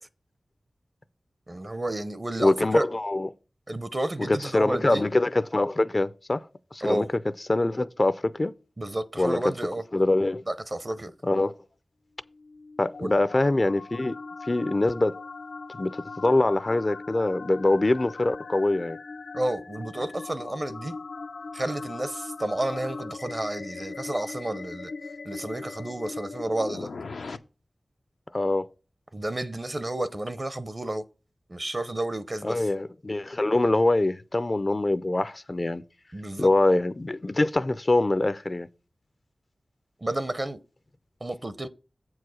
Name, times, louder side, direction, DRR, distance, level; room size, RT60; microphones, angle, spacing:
voice 1, 1.5-2.9 3.7-5.0 6.8-7.1 8.8-9.8 10.5-11.1 13.0-13.1 19.3-20.9 21.5-24.9 25.2-26.9 29.1-31.0 31.5-32.7 36.1-36.5 40.0-40.6 41.2-41.7, right 1 dB, 35° right, 0.6 m, -31 dB
voice 2, 2.4-3.3 4.3-6.4 6.7-7.1 7.5-8.5 9.2-9.4 9.9-10.4 11.2-11.5 12.8-14.2 14.4-15.1 15.7-19.0 28.3-28.7 32.4-35.8 36.4-38.7, left 2 dB, 35° left, 0.4 m, -24 dB
sound 1, 12.3-27.4, left 4 dB, 90° left, 0.6 m, -40 dB
7.9 x 4.7 x 6.2 m
wide cardioid pair, 80°, 0 cm